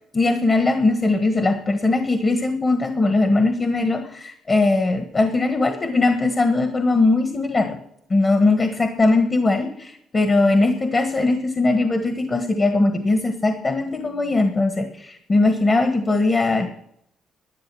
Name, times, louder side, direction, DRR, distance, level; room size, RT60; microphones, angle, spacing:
voice 1, 0.0-7.8 8.1-16.7, left 2 dB, 35° left, 6 dB, 1.4 m, -20 dB
11.5 x 10.0 x 6.2 m, 0.74 s
cardioid pair, 90°, 0 cm